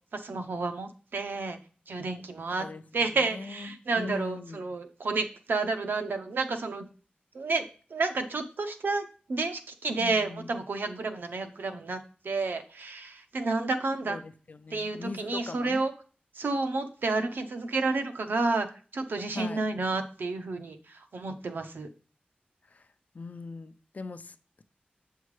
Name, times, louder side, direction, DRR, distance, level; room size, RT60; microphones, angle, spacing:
voice 1, 0.1-1.6 1.9-2.7 2.9-6.8 7.3-14.2 14.7-15.9 16.3-18.7 18.9-21.9, right 3 dB, 90° right, 0.8 m, -30 dB
voice 2, 2.6-4.6 10.0-10.5 14.1-15.8 19.3-19.6 22.7-22.9 23.1-24.6, left 3 dB, 50° left, 0.5 m, -40 dB
8.2 x 5.6 x 3.2 m
wide cardioid pair, 95°, 3 cm